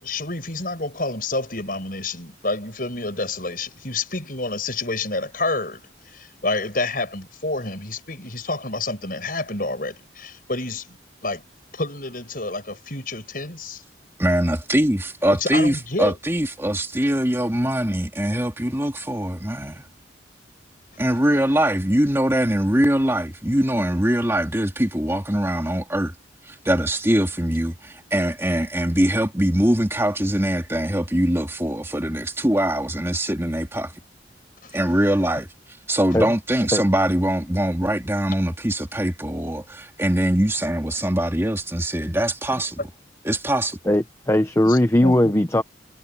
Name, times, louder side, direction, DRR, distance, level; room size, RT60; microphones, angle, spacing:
voice 1, 0.0-5.8 6.1-11.0 11.2-11.4 11.7-13.8 15.3-16.2 34.6-34.8 44.6-45.4, left 2 dB, 50° left, 7.6 m, -29 dB
voice 2, 14.2-19.8 21.0-26.1 26.5-33.9 34.7-35.5 35.9-42.8 43.2-43.8, right 1 dB, 15° right, 2.6 m, -22 dB
voice 3, 43.9-45.6, left 1 dB, 15° left, 0.8 m, -18 dB
head